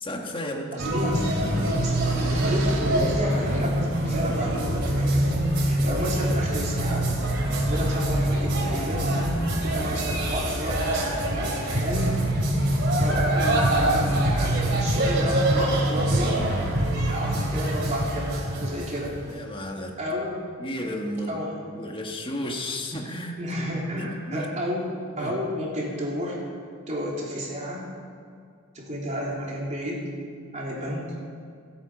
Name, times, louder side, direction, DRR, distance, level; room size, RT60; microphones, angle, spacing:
voice 1, 0.0-0.9 19.3-20.0 20.6-21.4 21.7-23.4 23.9-24.5 25.2-25.3, left 1 dB, 25° left, 1 dB, 1.5 m, -33 dB
voice 2, 0.7-5.3 5.5-7.1 7.7-9.1 9.6-12.2 12.9-16.4 17.1-19.1 20.0-20.4 21.3-21.5 23.4-24.9 25.2-26.4 26.9-27.9 28.7-30.0 30.5-31.0, equal, 35° right, -4 dB, 3.3 m, -31 dB
sound 1, 0.8-19.3, right 1 dB, 55° right, 3.3 m, -24 dB
sound 2, 1.4-3.7, right 1 dB, 75° right, 1.9 m, -38 dB
27.0 x 9.1 x 5.0 m, 2.2 s
head